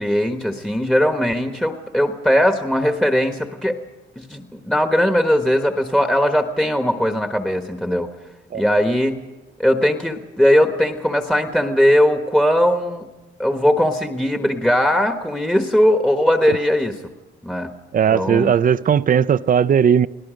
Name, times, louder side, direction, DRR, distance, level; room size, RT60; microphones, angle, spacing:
voice 1, 0.0-3.8 4.2-8.1 8.5-9.2 9.6-13.1 13.4-17.0 17.4-17.7 18.1-18.5, equal, 5° left, 1.3 m, -19 dB
voice 2, 17.9-20.1, right 8 dB, 45° right, 0.6 m, -17 dB
29.5 x 18.0 x 5.1 m
cardioid pair, 90°, 20 cm